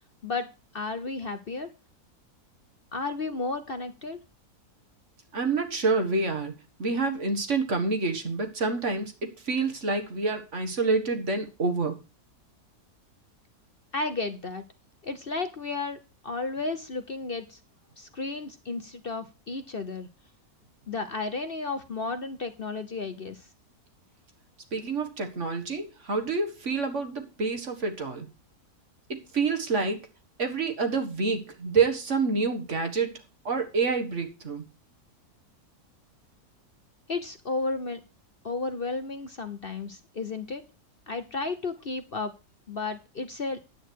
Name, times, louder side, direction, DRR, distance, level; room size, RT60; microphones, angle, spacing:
voice 1, 0.7-1.7 2.9-4.2 13.9-14.6 15.0-17.6 18.0-20.1 20.9-23.5 37.1-38.0 38.4-40.6 41.1-42.3 42.7-43.6, left 3 dB, 40° left, 8 dB, 1.1 m, -33 dB
voice 2, 5.3-6.5 6.8-12.0 24.7-28.3 29.1-30.0 30.4-33.1 33.5-34.7, right 4 dB, 50° right, 6 dB, 1.9 m, -27 dB
10.0 x 8.9 x 4.6 m, 0.30 s
omnidirectional pair, 1.6 m